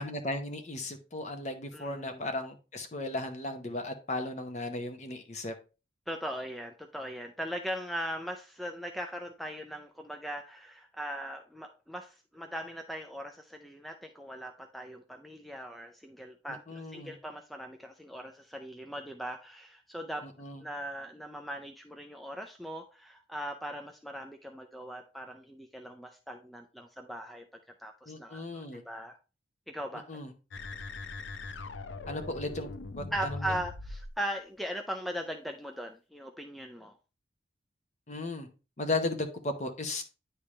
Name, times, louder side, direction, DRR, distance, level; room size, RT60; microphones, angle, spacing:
voice 1, 0.0-5.5 16.7-17.2 20.2-20.6 28.1-28.8 30.1-30.3 32.1-32.7 33.0-33.6 38.1-38.5 38.8-40.0, left 2 dB, 40° left, 7 dB, 0.9 m, -36 dB
voice 2, 1.7-2.2 6.1-20.2 20.6-27.5 27.8-29.2 29.7-30.0 33.1-37.0, equal, ahead, 4 dB, 0.3 m, -39 dB
sound 1, 30.5-34.1, left 3 dB, 85° left, 0.5 m, -41 dB
9.8 x 3.4 x 3.2 m, 0.32 s
head